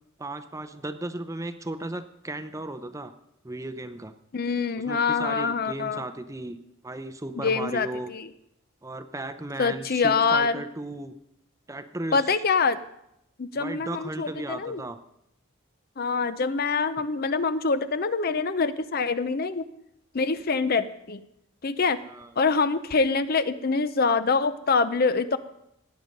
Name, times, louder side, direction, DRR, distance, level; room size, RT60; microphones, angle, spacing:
voice 1, 0.2-3.1 3.4-4.1 4.8-6.6 6.8-8.1 8.8-11.1 11.7-12.2 13.6-15.0 22.1-22.3, right 2 dB, 15° right, 10 dB, 0.6 m, -35 dB
voice 2, 4.3-6.0 7.4-8.3 9.6-10.6 12.1-12.8 13.4-14.8 16.0-19.7 20.1-21.2 21.6-22.0 22.4-25.4, left 4 dB, 45° left, 13 dB, 0.6 m, -25 dB
17.0 x 9.5 x 5.3 m, 0.79 s
head